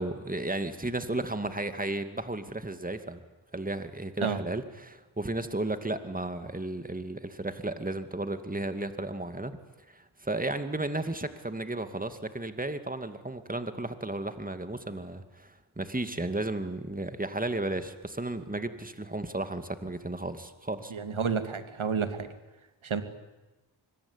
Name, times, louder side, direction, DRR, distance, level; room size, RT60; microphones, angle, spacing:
voice 1, 0.0-3.2 3.5-9.6 9.9-20.9, right 2 dB, 15° right, 9 dB, 2.5 m, -34 dB
voice 2, 20.9-22.3 22.8-23.0, right 6 dB, 80° right, 10 dB, 2.5 m, -30 dB
25.0 x 22.5 x 10.0 m, 1.1 s
cardioid pair, 55°, 47 cm